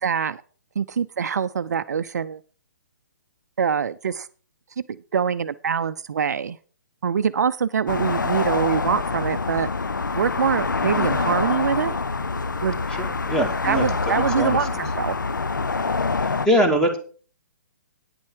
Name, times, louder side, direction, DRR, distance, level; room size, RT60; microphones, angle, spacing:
voice 1, 0.0-0.4 0.8-2.4 3.6-4.3 5.1-6.6 7.0-9.7 10.1-11.9 12.6-12.8 13.6-15.2, right 7 dB, 60° right, 12 dB, 0.5 m, -24 dB
sound 1, 7.9-16.5, left 4 dB, 85° left, 0.4 m, -25 dB
voice 2, 13.0-14.8 16.4-17.0, equal, 5° left, 5 dB, 2.0 m, -23 dB
9.7 x 8.5 x 4.6 m, 0.40 s
figure-of-eight pair, 130°, 10 cm